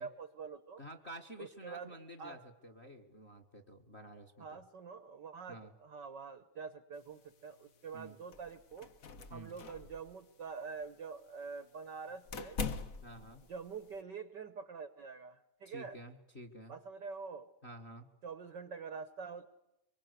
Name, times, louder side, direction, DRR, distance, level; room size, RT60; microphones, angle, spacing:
voice 1, 0.0-0.8 1.4-2.4 4.4-8.9 9.3-12.6 13.5-16.0 16.7-17.5 18.2-19.5, right 5 dB, 60° right, 11 dB, 1.1 m, -46 dB
voice 2, 0.8-4.6 5.5-5.7 7.9-8.2 9.3-9.6 13.0-13.4 15.6-16.7 17.6-18.1, right 1 dB, 30° left, 7 dB, 1.3 m, -50 dB
sound 1, 7.0-14.0, left 4 dB, 85° left, 0.7 m, -45 dB
25.0 x 24.0 x 8.1 m, 0.90 s
omnidirectional pair, 3.4 m